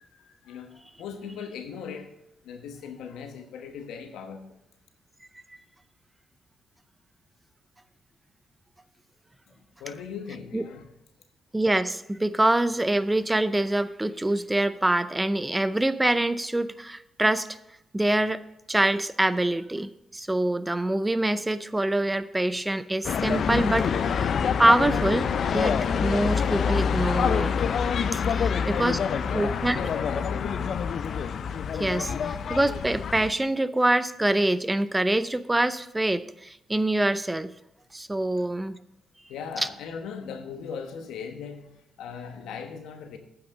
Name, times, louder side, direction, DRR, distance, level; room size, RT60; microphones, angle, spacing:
voice 1, 0.0-2.1 2.4-4.6 9.5-9.6 9.8-10.9 28.9-30.9 39.3-43.2, left 6 dB, 80° left, 6 dB, 1.1 m, -39 dB
voice 2, 11.5-17.5 17.9-18.4 18.7-24.3 24.6-27.5 28.1-29.0 29.3-29.8 31.8-37.5 37.9-38.8 39.6-39.7, right 1 dB, 15° right, 14 dB, 0.5 m, -25 dB
sound 1, 23.0-33.3, left 7 dB, 65° left, 0.5 m, -26 dB
9.0 x 5.9 x 6.4 m, 0.87 s
supercardioid pair, 55°, 0 cm